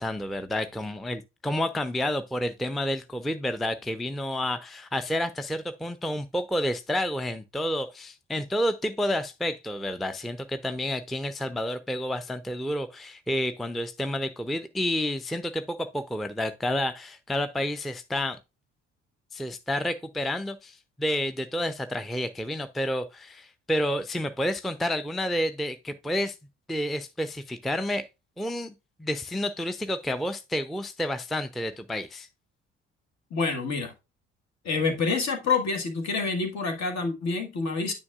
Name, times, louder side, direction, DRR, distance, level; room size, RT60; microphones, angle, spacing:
voice 1, 0.0-18.4 19.3-26.3 26.7-28.1 28.4-28.7 29.0-32.3, left 1 dB, ahead, 0.5 m, -30 dB
voice 2, 33.3-33.9 34.6-37.9, left 4 dB, 50° left, 1.6 m, -27 dB
9.6 x 5.4 x 2.4 m
figure-of-eight pair, 45°, 35 cm